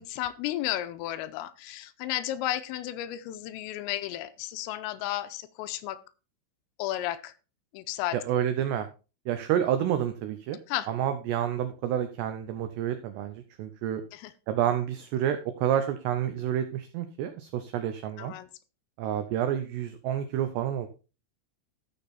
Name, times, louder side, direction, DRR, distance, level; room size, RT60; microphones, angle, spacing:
voice 1, 0.0-6.0 6.8-7.3 7.7-8.2 10.7-10.9 14.1-14.3 18.2-18.5, left 13 dB, 85° left, 13 dB, 3.3 m, -33 dB
voice 2, 8.1-8.9 9.3-10.6 10.9-14.0 14.5-18.3 19.0-20.9, right 10 dB, 85° right, 8 dB, 2.4 m, -29 dB
13.5 x 6.8 x 4.2 m, 0.32 s
omnidirectional pair, 5.9 m